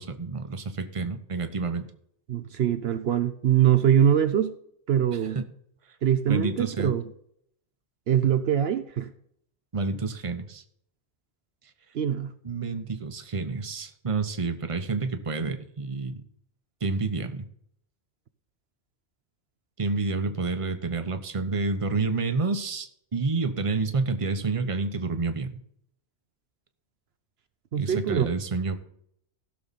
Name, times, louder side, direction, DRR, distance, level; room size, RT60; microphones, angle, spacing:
voice 1, 0.0-1.9 5.3-5.4 6.3-6.9 9.7-10.6 12.4-16.2 16.8-17.5 19.8-25.6 27.7-28.8, right 3 dB, 30° right, 1.0 m, -29 dB
voice 2, 2.3-4.5 4.9-5.4 6.0-7.0 8.1-9.1 11.9-12.3 27.7-28.3, right 9 dB, 70° right, 0.9 m, -23 dB
16.5 x 6.6 x 4.2 m
omnidirectional pair, 1.1 m